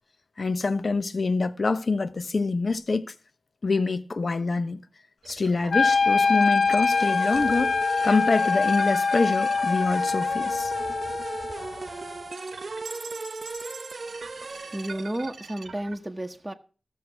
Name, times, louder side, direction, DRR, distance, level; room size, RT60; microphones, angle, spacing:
voice 1, 0.4-3.1 3.6-4.8 5.3-7.7 8.0-10.7, left 3 dB, 55° left, 0.9 m, -25 dB
sound 1, 5.2-16.0, right 4 dB, 85° right, 1.2 m, -44 dB
Wind instrument woodwind instrument, 5.7-11.8, left 4 dB, 80° left, 0.6 m, -24 dB
sound 2, 6.9-15.2, right 3 dB, 50° right, 0.7 m, -37 dB
voice 2, 14.4-16.5, right 1 dB, 15° right, 1.0 m, -33 dB
14.5 x 6.5 x 5.8 m
wide cardioid pair, 95°, 0 cm